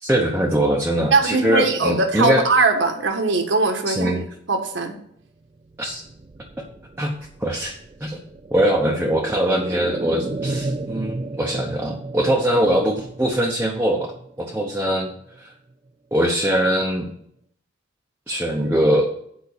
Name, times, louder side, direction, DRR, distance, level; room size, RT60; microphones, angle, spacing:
voice 1, 0.0-2.4 3.9-4.2 5.8-6.0 7.0-7.1 7.4-7.7 8.0-8.2 8.5-14.1 14.4-15.1 15.4-15.5 16.1-17.1 18.3-19.1, equal, 10° right, -1 dB, 0.9 m, -21 dB
voice 2, 1.1-4.9, right 3 dB, 70° right, 5 dB, 1.5 m, -20 dB
sound 1, 5.6-15.4 15.7-15.8, right 2 dB, 30° right, 0.4 m, -34 dB
8.3 x 5.2 x 6.6 m, 0.68 s
head